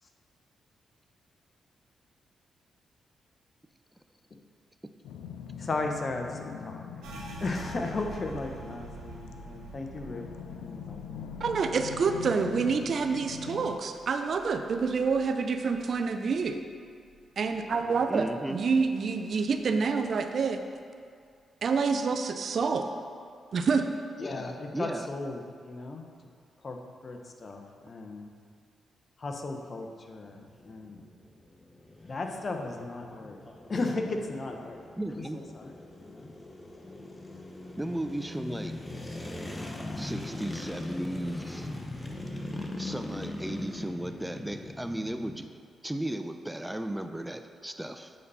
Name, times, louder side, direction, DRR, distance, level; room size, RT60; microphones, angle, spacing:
sound 1, 5.0-13.7, left 7 dB, 85° left, 0.4 m, -43 dB
voice 1, 5.6-7.1 7.4-10.2 10.6-11.3 24.2-26.1 26.6-28.3 29.2-31.1 32.0-33.4 33.7-34.8 35.3-35.7 36.0-36.3, left 3 dB, 50° left, 3 dB, 0.9 m, -36 dB
sound 2, 7.0-16.4 16.7-18.0 18.3-18.8 19.2-19.8, right 3 dB, 80° right, 1.1 m, -47 dB
voice 2, 11.4-16.6 17.4-20.6 21.6-22.9 23.5-23.9, right 5 dB, 60° right, 6 dB, 0.5 m, -27 dB
voice 3, 18.1-18.6 24.7-25.2 35.0-35.4 37.8-38.7 40.0-41.7 42.8-45.4 45.8-48.1, right 1 dB, 10° right, 7 dB, 0.5 m, -35 dB
sound 3, 30.3-45.5, left 2 dB, 20° left, 1.0 m, -41 dB
8.4 x 4.2 x 5.5 m, 2.3 s
supercardioid pair, 50°, 0 cm